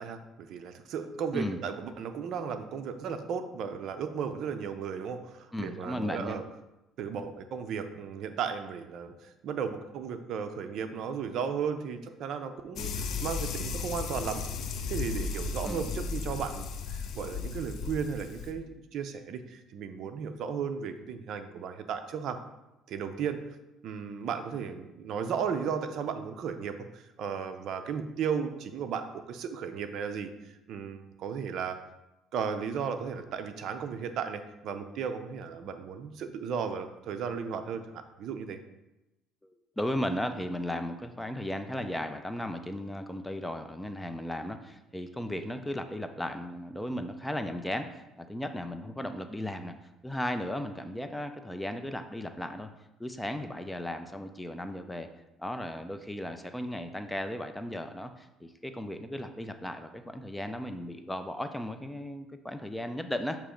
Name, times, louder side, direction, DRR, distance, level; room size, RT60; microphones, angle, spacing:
voice 1, 0.0-6.4 7.0-14.4 14.9-22.4 22.9-23.4 23.8-30.3 30.7-31.8 32.3-38.6, right 6 dB, 60° right, 8 dB, 0.5 m, -35 dB
voice 2, 5.5-6.4 15.6-15.9 39.4-49.7 50.0-52.7 53.0-55.1 55.4-63.4, left 1 dB, 5° left, 8 dB, 0.4 m, -36 dB
sound 1, 12.8-18.5, left 5 dB, 60° left, 0.6 m, -35 dB
6.7 x 3.0 x 5.0 m, 0.96 s
cardioid pair, 115°, 0 cm